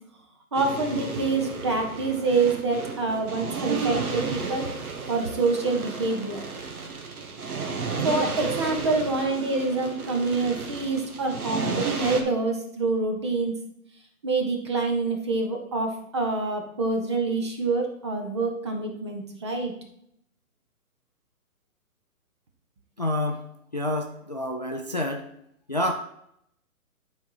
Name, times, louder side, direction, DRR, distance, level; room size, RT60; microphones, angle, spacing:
voice 1, 0.5-4.6 5.1-6.4 8.0-13.5 14.2-19.7, right 3 dB, 20° right, 3 dB, 0.6 m, -26 dB
sound 1, 0.5-12.2, right 4 dB, 90° right, 1.5 m, -32 dB
voice 2, 23.0-23.4 23.7-25.2 25.7-25.9, left 1 dB, 35° left, 3 dB, 0.4 m, -28 dB
9.7 x 4.1 x 4.6 m, 0.73 s
hypercardioid pair, 155°, 43 cm